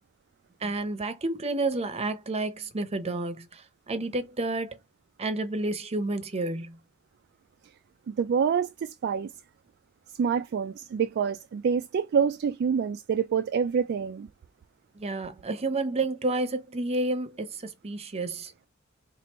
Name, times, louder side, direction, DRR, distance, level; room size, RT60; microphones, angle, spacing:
voice 1, 0.6-4.8 5.2-6.8 14.9-18.5, right 2 dB, 30° right, 0.7 m, -30 dB
voice 2, 8.1-9.3 10.2-14.3, right 6 dB, 50° right, 0.3 m, -27 dB
4.4 x 2.5 x 3.0 m
head